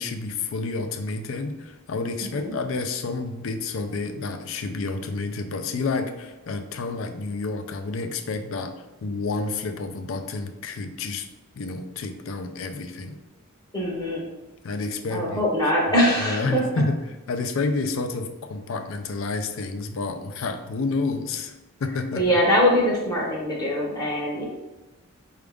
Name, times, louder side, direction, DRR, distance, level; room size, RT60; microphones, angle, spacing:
voice 1, 0.0-8.7 9.0-11.3 11.6-13.2 14.6-15.5 16.2-21.5 21.8-22.2, left 3 dB, 70° left, 8 dB, 0.4 m, -29 dB
voice 2, 13.7-14.2 15.1-16.6 22.2-24.4, equal, 20° left, -3 dB, 0.7 m, -22 dB
4.8 x 2.4 x 3.4 m, 1.1 s
head